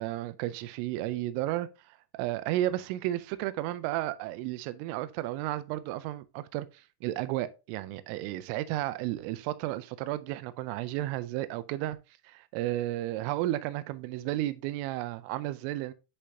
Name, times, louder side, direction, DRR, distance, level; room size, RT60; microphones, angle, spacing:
voice 1, 0.0-6.7 7.0-12.0 12.2-15.9, right 15 dB, 85° right, 3.0 m, -33 dB
10.0 x 5.0 x 2.7 m
omnidirectional pair, 6.0 m